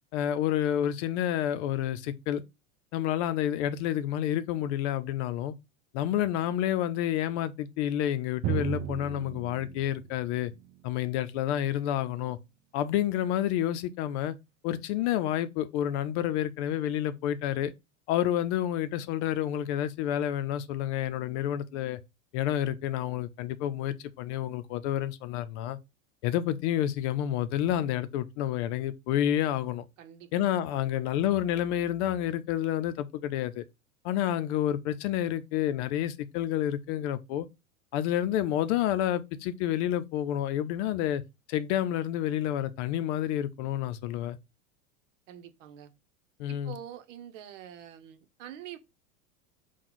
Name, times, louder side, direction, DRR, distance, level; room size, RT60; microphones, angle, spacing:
voice 1, 0.1-2.4 2.9-5.5 5.9-10.5 10.8-12.4 12.7-14.4 14.6-17.7 18.1-22.0 22.3-25.8 26.2-29.8 30.3-33.6 34.0-37.5 37.9-41.2 41.5-44.4 46.4-46.7, left 11 dB, 60° left, 0.6 m, -29 dB
Drum, 8.4-12.0, right 8 dB, 30° right, 0.4 m, -36 dB
voice 2, 30.0-30.3 30.7-30.9 45.3-45.9 46.5-48.8, right 10 dB, 65° right, 0.9 m, -46 dB
4.4 x 2.4 x 3.8 m
hypercardioid pair, 105°, 39 cm